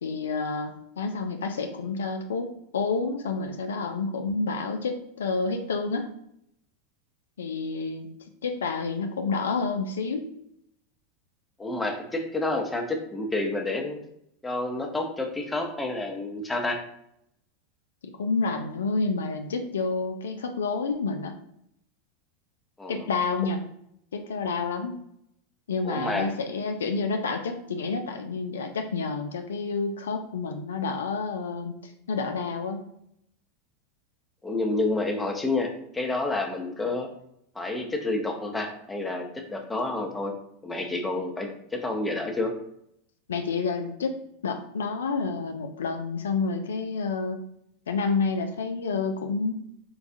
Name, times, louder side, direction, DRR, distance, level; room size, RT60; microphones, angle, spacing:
voice 1, 0.0-6.1 7.4-8.1 8.4-10.3 18.2-21.4 22.9-23.6 24.1-24.9 25.7-32.9 43.3-44.2 44.4-47.4 47.9-49.5, left 4 dB, 80° left, 6 dB, 0.4 m, -29 dB
voice 2, 11.6-14.0 14.4-16.8 22.8-23.1 25.8-26.3 34.4-37.1 37.5-40.3 40.6-42.5, left 2 dB, 15° left, 3 dB, 0.7 m, -29 dB
4.5 x 2.3 x 2.6 m, 0.74 s
hypercardioid pair, 95°, 0 cm